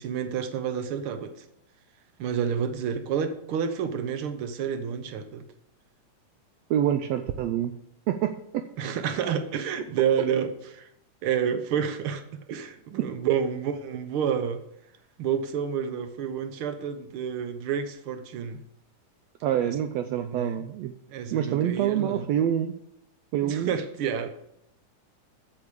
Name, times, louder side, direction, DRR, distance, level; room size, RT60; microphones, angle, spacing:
voice 1, 0.0-1.5 2.2-5.4 8.8-10.9 11.2-14.6 15.2-18.6 19.6-19.7 20.1-20.6 21.1-22.3 23.4-24.3, right 7 dB, 65° right, 9 dB, 1.3 m, -29 dB
voice 2, 6.7-7.7 8.1-8.7 19.4-20.9 21.3-22.7 23.3-23.8, right 10 dB, 85° right, 8 dB, 1.5 m, -26 dB
8.1 x 7.1 x 8.4 m, 0.77 s
omnidirectional pair, 3.7 m